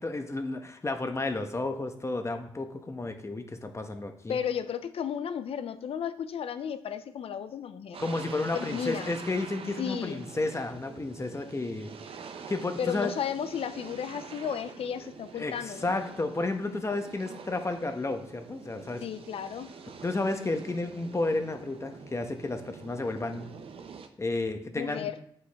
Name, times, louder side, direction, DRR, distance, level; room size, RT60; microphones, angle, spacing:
voice 1, 0.0-4.4 8.0-11.9 12.5-13.1 15.4-19.0 20.0-23.5 24.2-25.1, left 2 dB, 30° left, 6 dB, 1.0 m, -32 dB
voice 2, 4.3-8.0 8.5-9.1 9.8-10.2 12.8-15.9 19.0-19.7 24.8-25.2, left 8 dB, 80° left, 12 dB, 0.5 m, -34 dB
sound 1, 7.9-24.1, right 6 dB, 70° right, 0.7 m, -46 dB
7.8 x 5.4 x 3.5 m, 0.70 s
cardioid pair, 60°, 10 cm